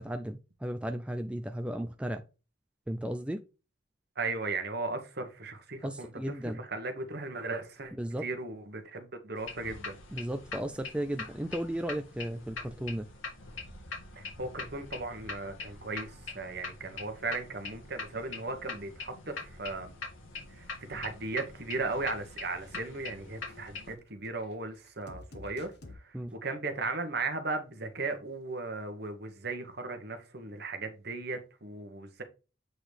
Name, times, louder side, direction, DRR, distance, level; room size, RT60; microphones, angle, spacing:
voice 1, 0.0-2.2 2.9-3.4 5.8-6.6 8.0-8.3 10.1-13.1 26.1-26.3, right 1 dB, 5° right, 0.3 m, -35 dB
voice 2, 4.2-10.0 14.2-19.9 20.5-25.7 26.0-32.2, right 3 dB, 50° right, 1.2 m, -37 dB
sound 1, 9.4-23.9, left 4 dB, 75° left, 2.1 m, -43 dB
sound 2, 20.3-20.8 21.0-21.2 21.7-22.3 22.6-23.0 23.5-25.9, left 2 dB, 55° left, 1.2 m, -51 dB
8.0 x 3.8 x 3.4 m
head